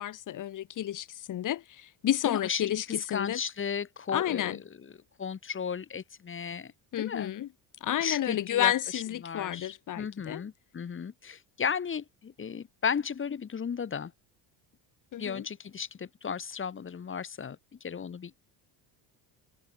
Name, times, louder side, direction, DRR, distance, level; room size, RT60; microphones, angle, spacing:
voice 1, 0.0-3.4 4.1-4.6 6.9-7.5 7.8-10.4 15.1-15.5, left 12 dB, 45° left, 2.5 m, -31 dB
voice 2, 2.3-2.7 3.1-4.6 5.2-6.7 7.0-7.3 8.0-14.1 15.2-18.3, left 6 dB, 25° left, 3.8 m, -35 dB
cardioid pair, 150°, 44 cm